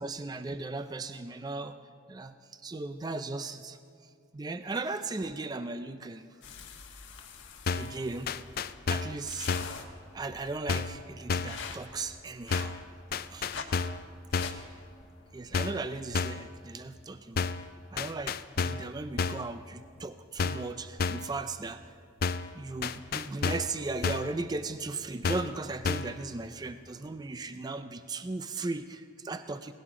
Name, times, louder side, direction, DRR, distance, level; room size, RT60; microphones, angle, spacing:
voice 1, 0.0-1.8 2.1-3.8 4.3-6.3 7.7-8.3 8.9-9.5 10.1-12.8 13.3-13.5 15.3-17.5 17.9-21.8 22.5-29.7, right 3 dB, 20° right, 10 dB, 0.3 m, -37 dB
sound 1, 6.4-15.6, left 5 dB, 70° left, 1.3 m, -46 dB
sound 2, 7.7-8.0 8.3-9.2 9.5-9.8 10.7-11.0 11.3-11.6 12.5-12.8 13.1-14.0 14.3-14.6 15.5-15.9 16.1-16.5 17.4-17.7 18.0-18.9 19.2-19.5 20.4-20.7 21.0-21.3 22.2-22.5 22.8-23.7 24.0-24.4 25.2-25.6 25.8-26.2, left 5 dB, 50° left, 0.4 m, -31 dB
19.0 x 16.5 x 3.7 m, 2.3 s
head